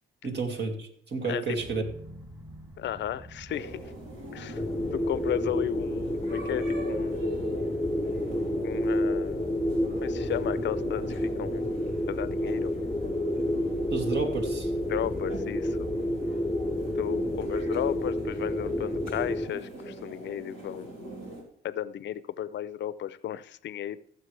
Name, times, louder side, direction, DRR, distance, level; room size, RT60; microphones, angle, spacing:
voice 1, 0.2-1.8 13.9-14.7, right 4 dB, 60° right, 4 dB, 2.3 m, -31 dB
voice 2, 1.2-1.6 2.8-3.8 4.3-4.6 4.9-7.2 8.6-9.5 10.0-11.6 12.1-12.7 14.9-15.8 17.0-20.9 21.6-24.0, left 11 dB, 65° left, 16 dB, 0.6 m, -34 dB
sound 1, 1.6-13.1, right 1 dB, 20° right, 3.0 m, -49 dB
sound 2, 3.5-21.4, right 1 dB, 80° right, 3.6 m, -41 dB
sound 3, 4.5-19.5, left 1 dB, 5° left, 0.8 m, -30 dB
16.0 x 7.4 x 3.3 m, 0.65 s
cardioid pair, 90°, 20 cm